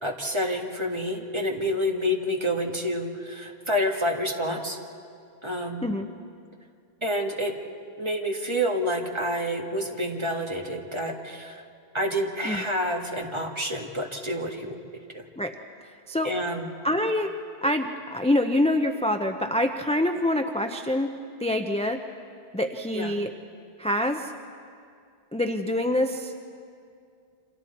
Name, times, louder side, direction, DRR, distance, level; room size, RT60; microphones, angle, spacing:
voice 1, 0.0-4.8 5.4-5.8 7.0-7.6 8.0-11.6 11.9-14.8 15.1-15.2 16.2-16.7 22.9-23.1, equal, 30° right, 2 dB, 1.7 m, -28 dB
voice 2, 16.8-17.3 17.6-21.1 21.4-22.0 22.5-23.3 23.8-24.3 25.3-26.3, left 1 dB, 5° left, 5 dB, 0.6 m, -25 dB
28.5 x 26.0 x 4.3 m, 2.4 s
omnidirectional pair, 1.0 m